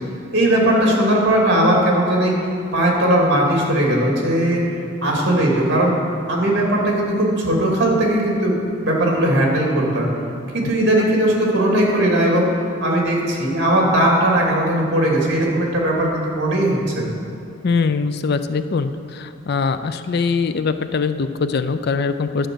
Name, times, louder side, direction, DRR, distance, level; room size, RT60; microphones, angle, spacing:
voice 1, 0.3-2.4 2.7-4.6 5.0-5.9 6.3-8.6 8.8-10.1 10.5-12.5 12.8-17.0, right 1 dB, 55° right, -2 dB, 2.6 m, -18 dB
voice 2, 17.6-22.5, left 4 dB, 50° left, 10 dB, 0.4 m, -22 dB
11.5 x 7.7 x 6.3 m, 2.9 s
head